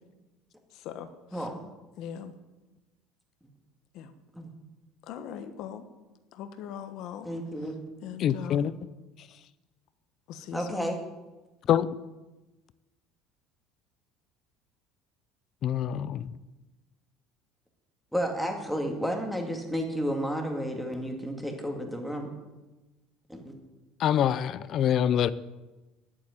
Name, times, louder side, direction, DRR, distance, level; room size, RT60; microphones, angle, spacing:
voice 1, 0.7-1.5 2.0-2.3 3.9-4.1 5.0-5.9 6.3-7.3 8.0-8.7 10.3-10.9, left 9 dB, 60° left, 8 dB, 1.2 m, -40 dB
voice 2, 7.2-7.8 10.5-11.0 18.1-22.3 23.3-23.5, equal, ahead, 2 dB, 2.2 m, -31 dB
voice 3, 8.2-8.7 11.7-11.9 15.6-16.3 24.0-25.3, left 10 dB, 45° left, 17 dB, 0.5 m, -25 dB
10.5 x 9.0 x 9.6 m, 1.1 s
cardioid pair, 140°, 0 cm